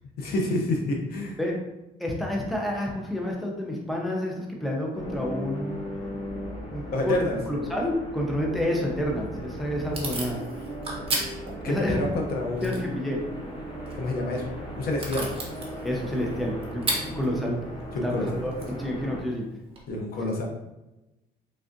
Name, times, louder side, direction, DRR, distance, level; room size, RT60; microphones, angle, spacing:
voice 1, 0.2-1.4 6.9-7.4 11.6-12.8 13.9-14.5 14.8-15.3 17.9-18.4 19.9-20.4, left 2 dB, 65° left, 1 dB, 0.7 m, -28 dB
voice 2, 2.0-5.8 6.7-7.2 7.5-10.4 11.7-12.1 12.6-13.2 15.8-17.6 18.0-19.4, left 1 dB, ahead, -1 dB, 0.5 m, -29 dB
sound 1, 4.9-19.2, equal, 30° left, 0.8 m, -37 dB
Packing tape duct tape / Tearing, 9.0-19.8, right 3 dB, 35° right, 0.9 m, -37 dB
3.3 x 2.4 x 2.6 m, 0.98 s
cardioid pair, 110°, 17 cm